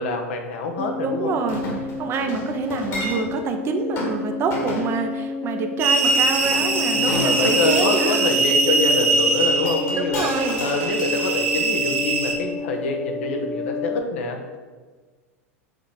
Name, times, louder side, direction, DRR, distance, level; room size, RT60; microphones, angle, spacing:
voice 1, 0.0-1.4 6.9-10.3 10.6-14.4, left 3 dB, 60° left, 3 dB, 1.2 m, -25 dB
sound 1, 0.8-14.0, left 4 dB, 15° left, 0.4 m, -31 dB
voice 2, 1.0-1.6 2.0-8.2 9.9-10.6, right 4 dB, 30° right, 5 dB, 0.8 m, -26 dB
Chink clink, 1.5-3.4 3.9-4.1 4.5-4.9 6.0-8.1 9.4-11.8 12.2-12.3, left 2 dB, 40° left, 1.9 m, -32 dB
sound 2, 5.8-12.3, right 3 dB, 55° right, 1.5 m, -22 dB
6.7 x 4.2 x 5.1 m, 1.4 s
figure-of-eight pair, 90°, 8 cm